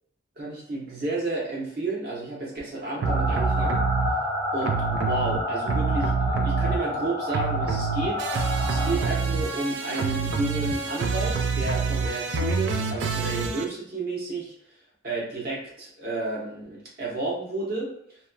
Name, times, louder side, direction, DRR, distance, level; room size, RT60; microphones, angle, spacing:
voice 1, 0.4-3.8 4.5-8.2 8.7-14.5 15.0-18.2, right 2 dB, 50° right, -6 dB, 1.0 m, -31 dB
sound 1, 3.0-9.0, left 2 dB, 25° left, 0.4 m, -30 dB
sound 2, 3.0-4.1 4.6-7.0 7.3-13.6, right 5 dB, 70° right, 0.3 m, -26 dB
2.9 x 2.3 x 2.3 m, 0.69 s
head